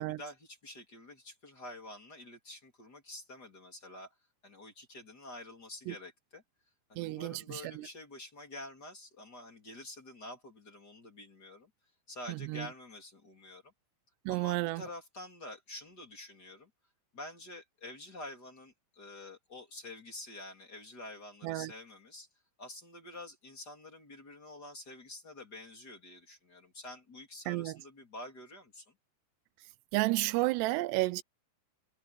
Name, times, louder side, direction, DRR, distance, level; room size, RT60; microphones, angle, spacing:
voice 1, 0.0-4.1 4.4-6.4 6.9-11.7 12.1-13.7 14.3-16.7 17.1-22.3 22.6-28.9, left 2 dB, 25° left, 3.7 m, -48 dB
voice 2, 7.0-7.9 12.3-12.7 14.3-14.8 21.4-21.7 27.5-27.8 29.9-31.2, right 20 dB, 90° right, 2.8 m, -32 dB
omnidirectional pair, 4.7 m